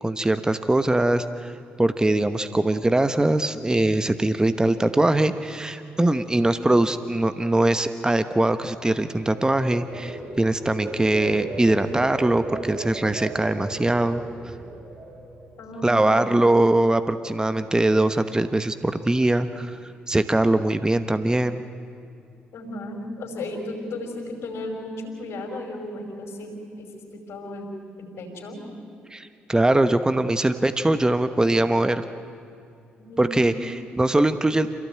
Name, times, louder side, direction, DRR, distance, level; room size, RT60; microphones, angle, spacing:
voice 1, 0.0-1.5 1.8-14.2 15.8-19.8 20.1-21.6 29.1-32.0 33.2-34.7, right 2 dB, 15° right, 10 dB, 1.1 m, -22 dB
sound 1, 8.7-15.9 16.3-16.6, right 2 dB, 60° right, 4.7 m, -36 dB
voice 2, 15.6-16.3 22.5-27.7 28.0-28.6 32.9-33.7, left 1 dB, 65° left, 2 dB, 5.3 m, -35 dB
27.0 x 17.0 x 8.9 m, 2.6 s
hypercardioid pair, 40°, 5 cm